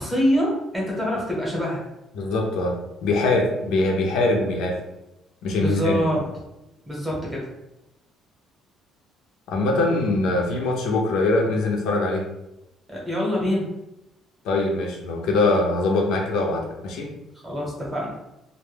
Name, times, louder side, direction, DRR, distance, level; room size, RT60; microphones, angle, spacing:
voice 1, 0.0-1.8 5.6-6.2 6.9-7.5 12.9-13.7 17.4-18.1, equal, 10° right, -4 dB, 0.8 m, -25 dB
voice 2, 2.1-2.8 3.0-4.7 5.4-6.0 9.5-12.2 14.4-17.1, left 2 dB, 80° left, 0 dB, 0.5 m, -22 dB
2.1 x 2.1 x 3.2 m, 0.92 s
cardioid pair, 155°, 0 cm